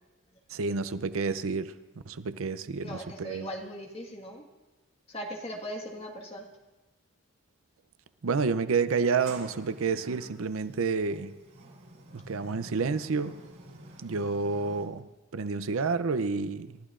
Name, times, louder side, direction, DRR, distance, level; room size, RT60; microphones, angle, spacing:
voice 1, 0.5-1.7 2.1-3.5 8.2-11.3 12.1-13.4 14.0-15.1 15.3-16.8, right 4 dB, 85° right, 0.6 m, -29 dB
voice 2, 2.8-4.5 5.1-6.5, equal, 30° left, 1.6 m, -39 dB
Sliding door, 8.9-14.9, right 1 dB, 70° right, 3.6 m, -48 dB
29.0 x 13.5 x 2.5 m
head